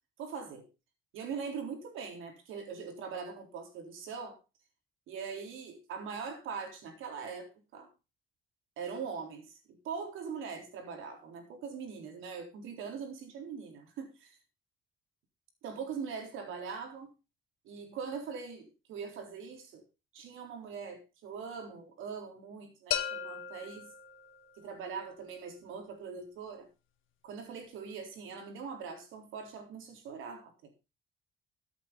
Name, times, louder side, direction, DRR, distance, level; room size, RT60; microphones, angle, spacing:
voice 1, 0.2-0.7 1.1-4.4 5.1-7.9 8.8-14.4 15.6-17.1 17.7-19.8 20.1-23.9 24.6-26.7 27.2-30.7, right 6 dB, 90° right, 3.9 m, -42 dB
sound 1, 22.9-24.7, left 9 dB, 85° left, 1.7 m, -37 dB
14.5 x 8.2 x 3.9 m
cardioid pair, 90°, 20 cm